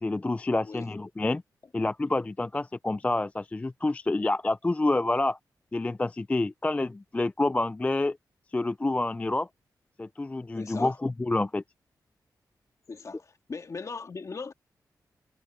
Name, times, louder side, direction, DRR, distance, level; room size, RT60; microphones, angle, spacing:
voice 1, 0.0-1.4 1.7-5.4 5.7-8.2 8.5-9.5 10.0-11.6, left 2 dB, 20° left, 0.3 m, -28 dB
voice 2, 10.6-11.0 12.9-14.5, left 4 dB, 45° left, 1.9 m, -39 dB
cardioid pair, 75°, 7 cm